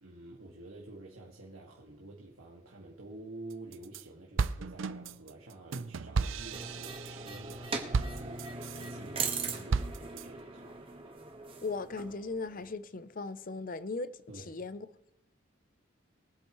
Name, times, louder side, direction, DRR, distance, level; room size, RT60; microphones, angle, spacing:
voice 1, 0.0-10.8 14.3-14.6, right 2 dB, 85° right, 1.9 m, -49 dB
sound 1, 3.5-4.0 4.4-8.9 9.3-10.3, right 4 dB, 70° right, 0.5 m, -34 dB
sound 2, 6.5-12.7, right 4 dB, 25° right, 1.4 m, -40 dB
voice 2, 11.6-14.9, left 3 dB, 40° left, 0.5 m, -38 dB
23.5 x 8.3 x 3.1 m
head